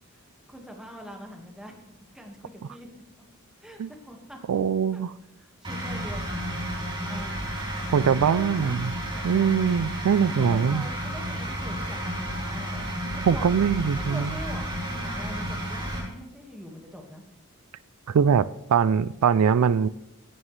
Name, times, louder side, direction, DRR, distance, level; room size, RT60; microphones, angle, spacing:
voice 1, 0.5-1.7 2.1-2.9 3.6-4.4 4.9-5.0 5.3-6.4 7.0-7.4 8.0-8.8 9.1-9.9 10.3-13.6 13.9-17.2, equal, 5° right, 1 dB, 1.8 m, -43 dB
voice 2, 4.5-5.1 7.9-8.9 9.2-10.8 13.2-14.4 18.1-19.9, right 7 dB, 80° right, 17 dB, 0.4 m, -22 dB
sound 1, 5.6-16.0, equal, 25° right, 3.9 m, -32 dB
17.0 x 11.0 x 3.3 m, 0.86 s
head